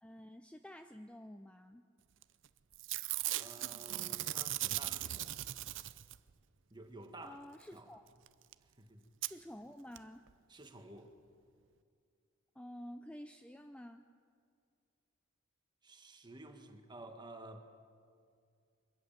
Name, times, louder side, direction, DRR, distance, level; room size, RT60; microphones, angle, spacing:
voice 1, 0.0-1.8 7.2-8.0 9.2-10.2 12.5-14.1, equal, 5° left, 7 dB, 0.5 m, -50 dB
Packing tape duct tape / Tearing, 2.2-2.5 2.7-6.3 8.3-8.4 8.5-8.6 9.2-9.3 10.0-10.1 10.3-10.4, right 15 dB, 60° right, 0.5 m, -38 dB
voice 2, 3.3-5.3 6.7-7.4 7.7-7.9 8.8-9.1 10.5-11.1 15.8-17.6, right 2 dB, 20° right, 5 dB, 1.7 m, -52 dB
24.0 x 14.0 x 9.1 m, 2.3 s
head